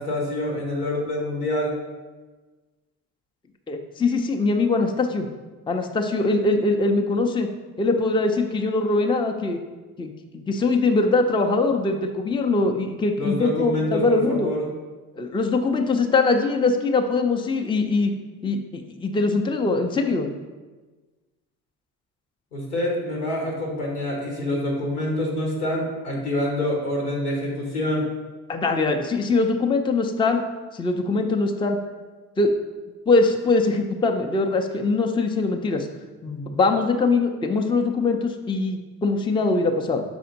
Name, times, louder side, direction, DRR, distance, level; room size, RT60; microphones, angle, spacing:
voice 1, 0.0-1.7 13.2-14.7 22.5-28.1, left 1 dB, 90° left, -2 dB, 1.5 m, -26 dB
voice 2, 3.7-5.3 5.7-7.5 7.8-9.6 10.0-14.5 15.2-18.1 18.4-20.3 28.5-30.4 30.7-31.8 32.4-32.6 33.1-35.9 36.2-40.0, left 3 dB, 10° left, 4 dB, 0.5 m, -22 dB
5.9 x 4.2 x 3.9 m, 1.3 s
hypercardioid pair, 55°, 45 cm